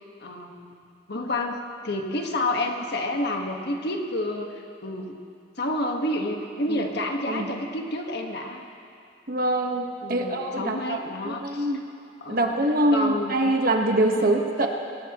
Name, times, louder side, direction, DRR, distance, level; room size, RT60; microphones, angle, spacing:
voice 1, 0.2-0.7 1.1-5.1 5.6-8.7 10.0-11.7 12.2-12.5 12.9-13.4 14.2-14.3 14.6-14.7, left 1 dB, 60° left, 2 dB, 1.5 m, -29 dB
voice 2, 9.3-11.0 11.2-11.8 12.3-14.7, right 1 dB, 50° right, 2 dB, 1.4 m, -24 dB
22.5 x 19.0 x 3.1 m, 2.5 s
head